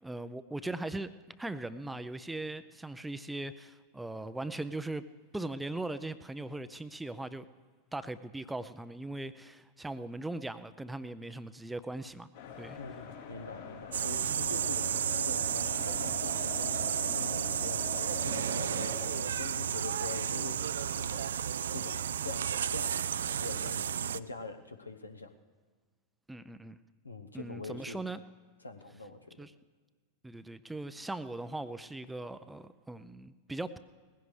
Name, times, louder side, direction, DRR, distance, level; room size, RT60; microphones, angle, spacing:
voice 1, 0.0-1.1 1.4-5.0 5.3-7.5 7.9-12.3 12.6-12.8 26.3-26.8 27.3-28.2 29.4-29.5 30.2-33.8, right 2 dB, 5° right, 13 dB, 0.5 m, -39 dB
sound 1, 12.3-19.2, left 6 dB, 65° left, 2.8 m, -44 dB
voice 2, 12.8-21.4 21.7-25.3 27.0-28.0 28.6-29.5, left 3 dB, 80° left, 7 dB, 1.0 m, -44 dB
sound 2, 13.9-24.2, right 9 dB, 65° right, 0.3 m, -32 dB
20.0 x 16.0 x 3.2 m, 1.5 s
figure-of-eight pair, 90°, 0 cm